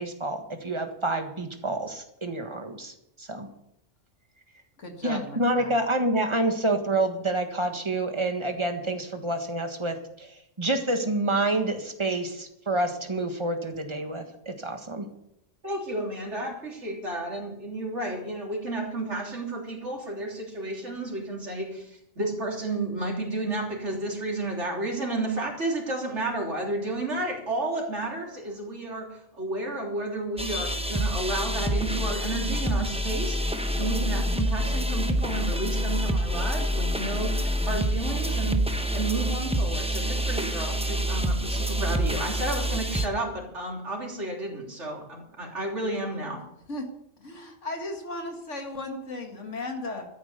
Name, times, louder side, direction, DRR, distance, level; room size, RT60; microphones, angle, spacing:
voice 1, 0.0-2.9 3.2-3.5 5.0-15.0, right 2 dB, 25° right, 5 dB, 1.6 m, -28 dB
voice 2, 4.8-5.7 46.7-46.9 47.2-50.1, left 2 dB, 80° left, 4 dB, 2.4 m, -36 dB
voice 3, 15.6-38.6 38.9-46.4, right 2 dB, 70° right, -1 dB, 3.7 m, -32 dB
sound 1, 30.4-43.1, equal, 5° right, 0.8 m, -27 dB
13.0 x 9.5 x 6.8 m, 0.78 s
omnidirectional pair, 1.2 m